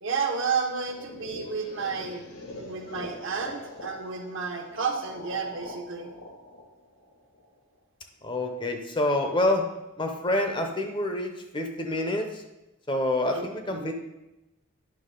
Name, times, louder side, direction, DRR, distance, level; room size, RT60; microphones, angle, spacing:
voice 1, 0.0-6.1 13.3-13.9, right 5 dB, 60° right, 2 dB, 1.0 m, -31 dB
sound 1, 0.9-7.8, left 2 dB, 85° left, 1.6 m, -43 dB
voice 2, 8.2-9.7 10.0-12.4 12.9-13.9, left 1 dB, 20° left, 4 dB, 0.7 m, -27 dB
9.6 x 6.0 x 3.8 m, 0.95 s
head